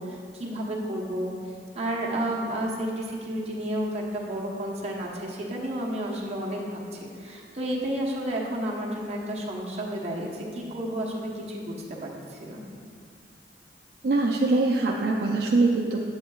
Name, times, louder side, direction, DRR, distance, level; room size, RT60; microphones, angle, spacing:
voice 1, 0.0-1.3 1.7-12.6, right 1 dB, 35° right, -4 dB, 1.0 m, -31 dB
voice 2, 14.0-16.0, right 3 dB, 65° right, -1 dB, 0.4 m, -23 dB
8.0 x 8.0 x 2.3 m, 2.2 s
head